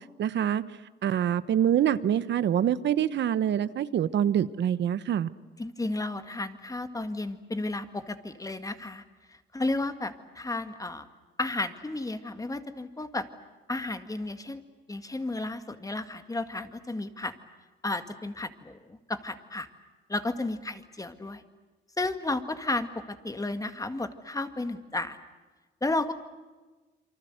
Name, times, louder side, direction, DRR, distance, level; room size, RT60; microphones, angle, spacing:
voice 1, 0.2-0.6 1.0-5.3, right 10 dB, 65° right, 15 dB, 1.0 m, -25 dB
voice 2, 5.6-9.0 9.3-11.1 11.4-13.3 13.7-14.6 14.9-17.3 17.8-19.7 20.1-21.4 22.0-22.9 23.2-25.2 25.8-26.1, left 2 dB, 15° left, 9 dB, 2.0 m, -33 dB
28.0 x 24.5 x 8.0 m, 1.3 s
cardioid pair, 90°, 20 cm